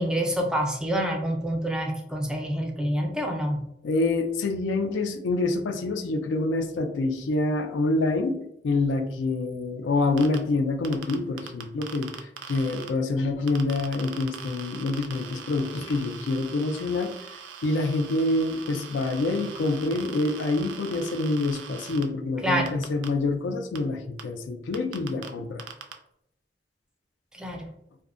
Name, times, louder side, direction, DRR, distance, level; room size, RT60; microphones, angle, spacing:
voice 1, 0.0-3.6 22.4-22.8 27.3-27.7, equal, 5° right, 2 dB, 0.3 m, -27 dB
voice 2, 3.8-8.4 8.6-17.1 17.6-25.7, left 2 dB, 85° left, 7 dB, 0.3 m, -26 dB
sound 1, 10.2-10.4 10.8-12.9 13.5-22.0 22.7-23.1 23.8-23.9 24.2-24.3 24.7-25.3 25.6-25.9, right 7 dB, 85° right, 0.3 m, -41 dB
2.5 x 2.0 x 2.4 m, 0.77 s
head